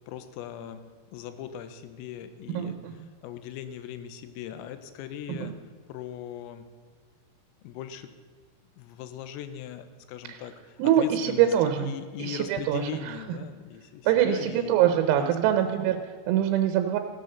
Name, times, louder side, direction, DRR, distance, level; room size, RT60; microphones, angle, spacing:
voice 1, 0.1-0.8 1.1-2.8 3.2-5.6 5.9-6.6 7.6-8.1 8.8-11.5 11.8-14.7 15.2-15.7, left 9 dB, 85° left, 10 dB, 3.6 m, -39 dB
voice 2, 2.6-2.9 5.3-5.5 10.3-10.4 10.8-11.9 12.2-13.2 14.1-17.0, right 10 dB, 90° right, 7 dB, 3.6 m, -24 dB
15.5 x 10.5 x 6.7 m, 1.5 s
omnidirectional pair, 5.9 m